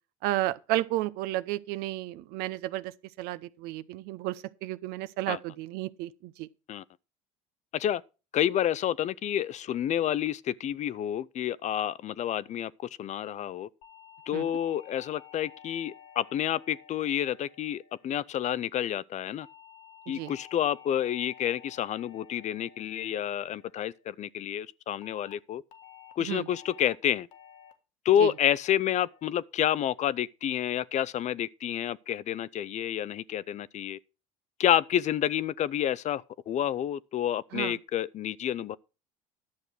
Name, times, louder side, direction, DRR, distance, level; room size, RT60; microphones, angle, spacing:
voice 1, 0.2-2.9 3.2-6.5 14.3-14.5 20.1-20.3 26.2-26.5 28.2-28.3 37.5-37.8, right 16 dB, 65° right, 0.7 m, -32 dB
voice 2, 8.3-13.7 14.3-19.5 20.1-25.6 26.2-27.3 28.0-34.0 34.6-38.8, left 10 dB, 45° left, 0.5 m, -29 dB
sound 1, 13.8-18.3 19.4-23.9 25.0-25.3 25.7-26.1 26.5-26.9 27.3-27.7 28.1-28.5 28.9-29.3, left 8 dB, 75° left, 1.7 m, -53 dB
11.5 x 6.6 x 6.0 m
hypercardioid pair, 75°, 17 cm